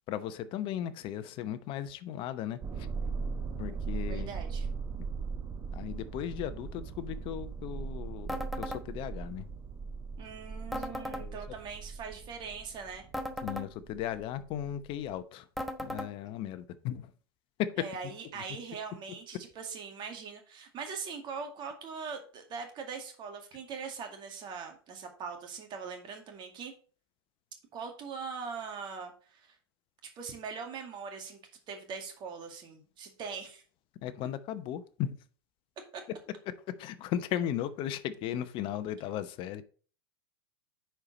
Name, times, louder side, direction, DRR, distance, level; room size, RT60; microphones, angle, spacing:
voice 1, 0.1-2.9 3.6-4.3 4.9-5.0 5.7-9.5 10.8-11.4 13.4-15.5 15.8-17.1 17.6-17.7 18.3-18.4 34.0-35.2 36.8-39.6, left 11 dB, 40° left, 0.9 m, -36 dB
sound 1, 2.6-15.1, right 5 dB, 20° right, 1.1 m, -39 dB
voice 2, 4.1-4.7 10.2-13.1 17.8-26.7 27.7-29.6 30.2-31.4 31.7-33.6 35.9-36.0, right 5 dB, 35° right, 2.1 m, -41 dB
sound 2, 8.3-8.8 10.7-11.2 13.1-13.7 15.6-16.1, left 1 dB, ahead, 1.0 m, -36 dB
9.7 x 4.6 x 4.0 m
figure-of-eight pair, 90°, 13 cm